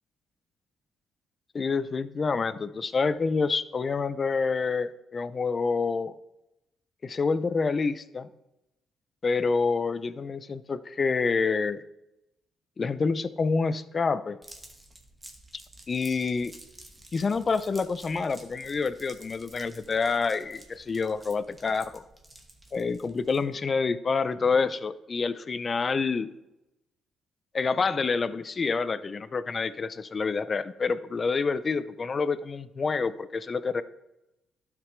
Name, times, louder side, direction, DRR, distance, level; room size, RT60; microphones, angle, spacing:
voice 1, 1.5-6.1 7.0-8.3 9.2-11.8 12.8-14.4 15.9-16.5 17.1-22.0 22.7-26.3 27.5-33.8, left 4 dB, 35° left, 14 dB, 0.5 m, -27 dB
sound 1, 14.4-23.6, right 1 dB, 15° right, 1.3 m, -51 dB
12.0 x 5.0 x 3.2 m, 0.90 s
cardioid pair, 90°, 0 cm